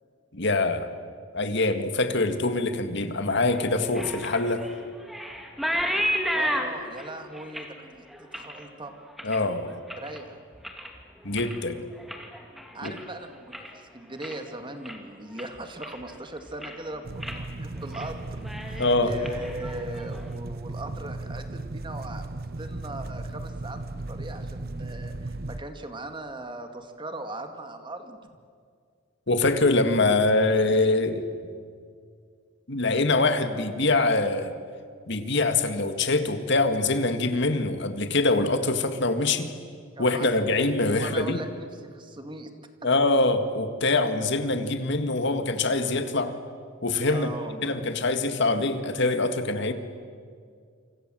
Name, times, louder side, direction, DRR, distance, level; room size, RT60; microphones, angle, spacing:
voice 1, 0.3-0.9 1.3-4.6 9.2-9.7 11.2-11.8 12.8-12.9 18.8-19.1 29.3-31.3 32.7-34.5 35.1-39.5 40.0-41.4 42.8-46.3 46.8-47.3 47.6-49.7, left 2 dB, 60° left, 8 dB, 2.0 m, -24 dB
sound 1, 3.5-10.2 10.5-11.0 11.3-13.8 14.1-14.5 14.8-15.0 15.4-16.2 16.5-16.9 17.2-17.4 17.7-18.1 18.4-20.2, equal, ahead, 2.6 m, -33 dB
voice 2, 6.3-8.9 10.0-10.4 12.7-23.8 24.1-28.2 39.2-39.4 40.0-40.7 41.0-42.5 47.1-47.7, right 2 dB, 25° right, 6 dB, 2.1 m, -39 dB
sound 2, 17.0-25.6, right 2 dB, 50° right, 0.8 m, -36 dB
28.5 x 26.0 x 7.8 m, 2.1 s
head